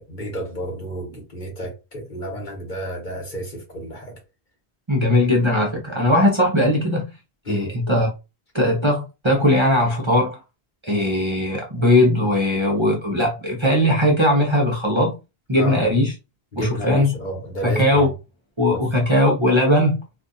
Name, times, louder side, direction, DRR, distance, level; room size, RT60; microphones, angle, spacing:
voice 1, 0.0-4.2 7.4-7.7 15.5-15.9 16.5-18.1 18.7-18.9, right 1 dB, 50° left, 1.3 m, -31 dB
voice 2, 4.9-7.1 7.5-8.1 8.5-10.4 10.8-15.2 15.5-16.1 16.6-17.1 17.6-18.1 18.6-20.0, left 1 dB, 30° right, 0.7 m, -19 dB
2.5 x 2.5 x 3.9 m
omnidirectional pair, 1.1 m